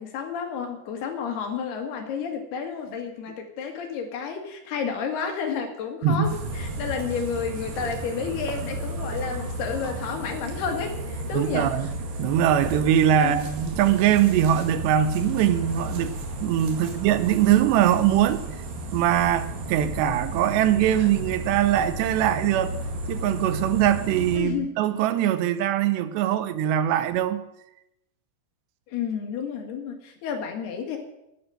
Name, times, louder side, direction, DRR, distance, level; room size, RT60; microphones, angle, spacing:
voice 1, 0.0-11.7 13.2-13.5 16.8-16.9 24.3-24.7 28.9-31.0, left 6 dB, 70° left, 3.8 m, -31 dB
sound 1, 6.2-24.4, right 1 dB, 60° right, 3.7 m, -33 dB
voice 2, 11.3-11.9 12.2-16.1 16.4-18.4 18.9-22.7 23.1-27.4, right 11 dB, 90° right, 3.1 m, -22 dB
12.5 x 10.0 x 7.8 m
omnidirectional pair, 4.8 m